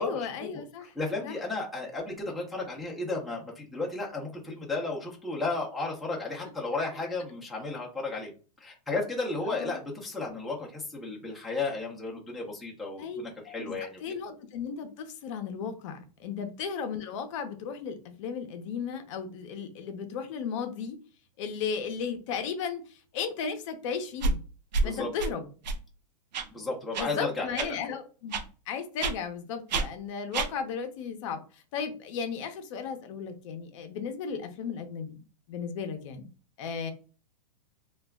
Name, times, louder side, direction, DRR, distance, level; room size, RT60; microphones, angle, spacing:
voice 1, 0.0-0.9 1.2-1.4 9.4-9.8 13.0-21.0 21.4-24.4 24.8-25.5 26.9-35.2 35.5-36.3 36.6-36.9, left 6 dB, 45° left, 0.6 m, -35 dB
voice 2, 0.8-8.3 8.6-14.0 16.2-16.3 24.8-25.1 26.5-27.8, left 3 dB, ahead, 0.5 m, -34 dB
sound 1, 24.2-24.3 24.7-24.9 25.2-25.3 25.6-25.8 26.3-26.5 26.9-27.1 27.6-27.7 28.3-28.5 29.0-29.1 29.7-29.9 30.3-30.5, right 3 dB, 90° right, 0.5 m, -27 dB
2.3 x 2.1 x 3.4 m
hypercardioid pair, 145°, 21 cm